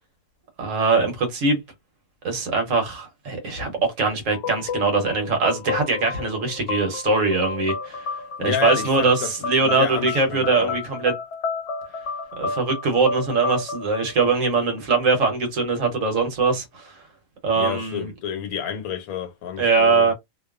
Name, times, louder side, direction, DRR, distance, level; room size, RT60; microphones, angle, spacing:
voice 1, 0.6-1.6 2.2-8.1 8.4-11.1 12.4-17.0 17.4-18.1 19.6-20.1, right 4 dB, 70° right, 1.3 m, -22 dB
sound 1, 4.3-15.0, left 5 dB, 65° left, 0.8 m, -31 dB
voice 2, 8.4-9.3 9.6-10.8 17.5-20.1, left 7 dB, 85° left, 1.2 m, -29 dB
2.7 x 2.3 x 2.3 m
omnidirectional pair, 1.5 m